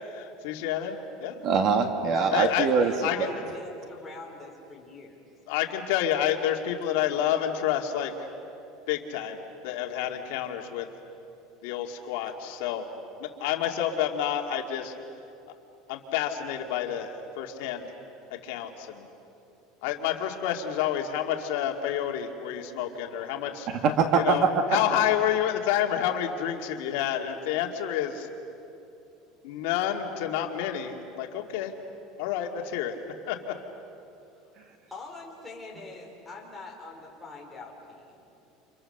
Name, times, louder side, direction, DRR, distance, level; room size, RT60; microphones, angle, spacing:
voice 1, 0.2-1.4 2.3-2.7 3.0-3.3 5.5-8.3 8.9-10.9 11.6-12.9 13.2-14.9 15.9-17.9 18.3-19.1 19.8-23.7 24.1-24.5 24.7-28.3 29.4-31.7 32.2-33.0 33.3-33.6, left 10 dB, 70° left, 2 dB, 2.2 m, -29 dB
voice 2, 1.4-2.9 23.7-24.5, right 5 dB, 40° right, 6 dB, 1.7 m, -23 dB
voice 3, 2.1-5.2 34.9-38.2, left 3 dB, 5° left, -3 dB, 4.2 m, -44 dB
29.5 x 28.5 x 6.7 m, 2.8 s
cardioid pair, 175°, 0 cm